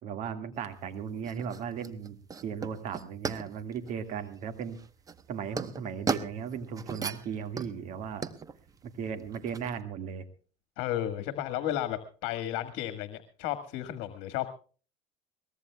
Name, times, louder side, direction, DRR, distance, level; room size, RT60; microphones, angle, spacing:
voice 1, 0.0-4.8 5.3-8.3 8.8-10.2 11.5-11.7, right 7 dB, 55° right, 10 dB, 1.9 m, -36 dB
sound 1, 0.5-9.8, right 5 dB, 25° right, 1.0 m, -38 dB
voice 2, 10.8-14.5, left 12 dB, 70° left, 10 dB, 1.6 m, -33 dB
22.5 x 19.5 x 2.3 m, 0.39 s
cardioid pair, 125°, 15 cm